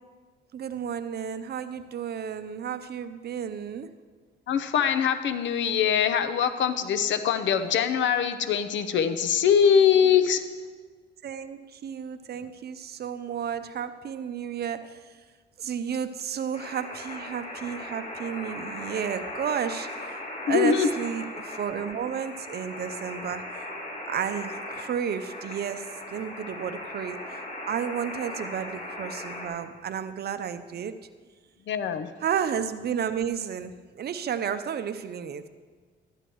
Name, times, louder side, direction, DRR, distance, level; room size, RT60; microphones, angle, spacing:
voice 1, 0.5-3.9 11.2-15.1 15.6-20.2 20.5-23.6 24.1-31.1 32.2-35.5, right 8 dB, 55° right, 11 dB, 0.7 m, -32 dB
voice 2, 4.5-10.4 20.5-20.9 31.7-32.1, left 7 dB, 70° left, 11 dB, 0.7 m, -23 dB
sound 1, 16.5-29.5, left 1 dB, 40° left, 3.5 m, -38 dB
13.0 x 11.0 x 3.1 m, 1.5 s
cardioid pair, 90°, 20 cm